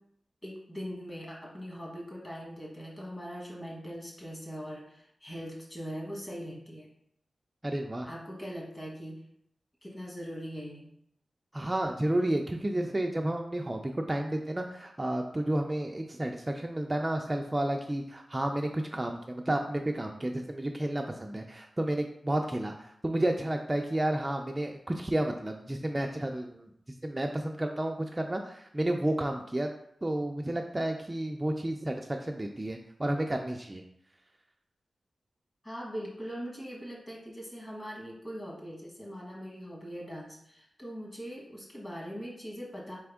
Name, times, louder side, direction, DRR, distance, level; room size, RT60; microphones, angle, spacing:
voice 1, 0.4-6.9 8.0-9.2 9.8-10.9 35.6-43.0, equal, 25° left, -2 dB, 1.4 m, -41 dB
voice 2, 7.6-8.1 11.5-26.7 27.0-29.7 30.0-33.8, right 1 dB, 20° right, 3 dB, 0.3 m, -31 dB
4.3 x 3.4 x 3.5 m, 0.72 s
wide cardioid pair, 105°, 0 cm